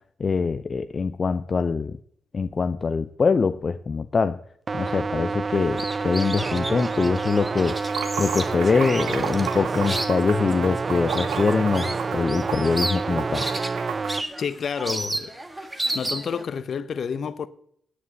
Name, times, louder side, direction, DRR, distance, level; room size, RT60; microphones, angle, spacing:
voice 1, 0.2-2.0 2.3-4.4 4.7-7.7 8.2-13.5, left 5 dB, 45° left, 0.6 m, -23 dB
sound 1, 4.7-14.2, right 4 dB, 45° right, 0.4 m, -28 dB
sound 2, 5.5-16.4, right 1 dB, 20° right, 1.8 m, -33 dB
Water / Sink (filling or washing), 7.6-14.1, right 8 dB, 90° right, 1.2 m, -33 dB
voice 2, 14.4-15.7 15.9-17.5, left 6 dB, 65° left, 0.9 m, -30 dB
9.7 x 8.6 x 8.0 m
supercardioid pair, 55°, 0 cm